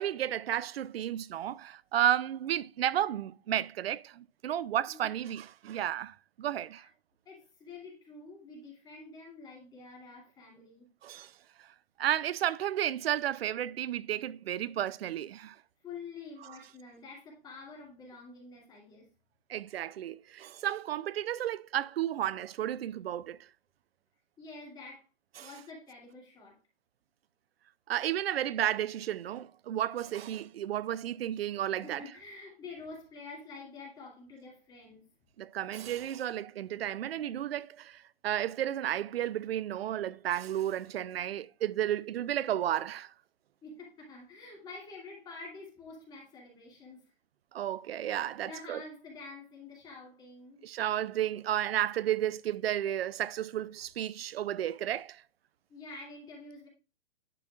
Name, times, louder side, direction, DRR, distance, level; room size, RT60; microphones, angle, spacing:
voice 1, 0.0-6.8 11.0-11.3 12.0-15.6 19.5-23.4 25.4-25.5 27.9-32.0 35.4-43.1 47.5-48.8 50.6-55.2, right 11 dB, 70° right, 0.5 m, -32 dB
voice 2, 7.2-10.9 15.8-19.1 24.4-25.1 25.4-26.6 31.7-35.1 43.6-47.1 48.4-50.7 55.7-56.7, left 3 dB, 15° left, 2.4 m, -48 dB
10.5 x 5.8 x 2.4 m
hypercardioid pair, 150°, 31 cm